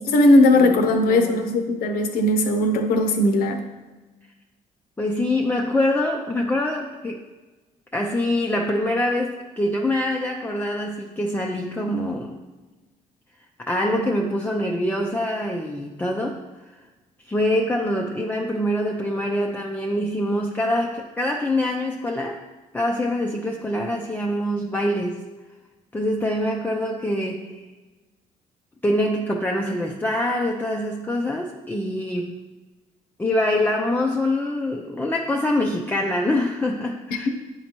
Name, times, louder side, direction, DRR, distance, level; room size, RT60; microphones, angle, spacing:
voice 1, 0.1-3.6, left 1 dB, 80° left, 6 dB, 0.8 m, -18 dB
voice 2, 1.1-1.5 5.0-7.2 7.9-12.4 13.6-16.4 17.3-22.4 22.7-25.2 25.9-27.6 28.8-32.5 33.2-37.3, left 1 dB, 10° left, 0 dB, 0.5 m, -24 dB
9.2 x 4.1 x 3.0 m, 1.2 s
cardioid pair, 90°, 15 cm